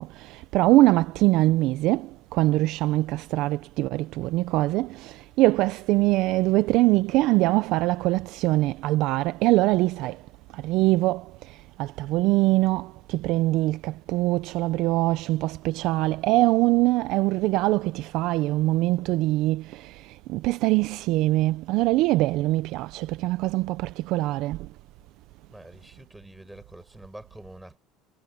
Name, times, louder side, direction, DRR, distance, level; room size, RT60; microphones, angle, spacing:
voice 1, 0.0-10.2 10.5-24.7, right 18 dB, 55° right, 0.4 m, -23 dB
voice 2, 25.5-27.8, right 1 dB, 5° right, 6.9 m, -46 dB
cardioid pair, 170°, 0 cm